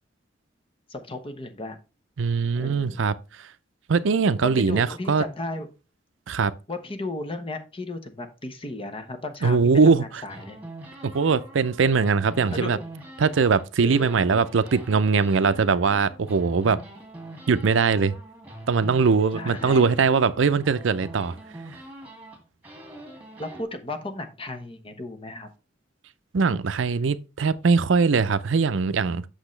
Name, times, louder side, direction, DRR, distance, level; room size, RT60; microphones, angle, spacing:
voice 1, 0.9-1.8 2.5-3.0 4.4-5.7 6.7-9.6 9.8-10.6 12.5-12.8 13.8-14.2 19.4-20.0 23.4-25.5, left 2 dB, 30° left, 1.0 m, -35 dB
voice 2, 2.2-3.1 3.9-5.2 6.3-6.5 9.4-10.2 11.0-12.8 13.2-16.8 17.5-18.1 18.7-21.4 26.3-29.2, right 5 dB, 80° right, 0.5 m, -21 dB
sound 1, 10.3-13.7 13.9-23.6, right 1 dB, 10° right, 2.4 m, -43 dB
8.1 x 6.4 x 3.2 m
head